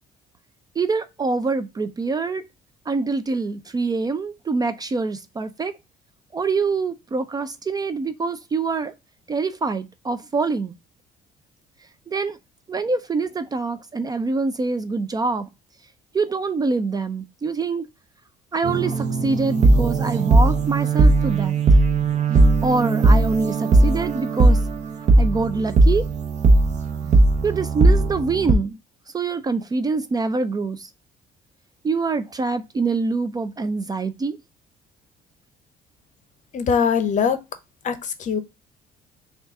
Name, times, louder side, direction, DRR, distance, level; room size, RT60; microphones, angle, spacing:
voice 1, 0.8-2.4 2.9-5.7 6.3-8.9 9.3-10.7 12.1-12.4 12.7-15.5 16.1-17.9 18.5-21.5 22.6-24.6 25.2-26.1 27.4-28.8 29.1-30.9 31.8-34.4, right 4 dB, 25° right, 0.4 m, -25 dB
sound 1, 18.6-28.5, right 2 dB, 45° right, 0.8 m, -18 dB
voice 2, 36.5-37.4 37.8-38.4, left 6 dB, 45° left, 0.7 m, -21 dB
3.9 x 2.4 x 3.5 m
cardioid pair, 110°, 17 cm